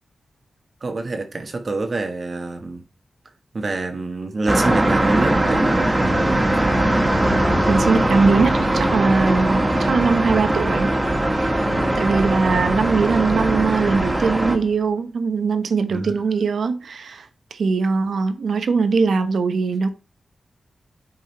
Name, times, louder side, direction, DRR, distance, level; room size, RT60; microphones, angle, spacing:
voice 1, 0.8-2.8 3.5-5.9 11.6-12.0 15.9-16.1, right 3 dB, 50° right, 1.3 m, -26 dB
sound 1, 4.5-14.6, right 1 dB, 25° right, 1.6 m, -20 dB
sound 2, 6.0-14.8, left 1 dB, 30° left, 2.0 m, -31 dB
voice 2, 7.7-10.9 11.3-11.6 11.9-19.9, right 4 dB, 80° right, 0.9 m, -21 dB
9.7 x 3.9 x 4.3 m
cardioid pair, 70°, 0 cm